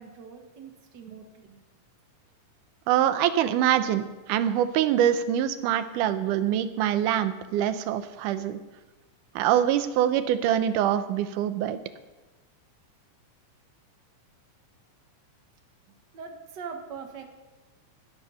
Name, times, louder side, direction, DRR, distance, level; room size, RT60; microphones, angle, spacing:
voice 1, 0.0-1.6 16.1-17.2, right 6 dB, 45° right, 4 dB, 1.5 m, -42 dB
voice 2, 2.9-8.6 9.4-11.8, right 10 dB, 90° right, 11 dB, 2.3 m, -24 dB
16.0 x 7.9 x 5.6 m, 1.1 s
omnidirectional pair, 3.6 m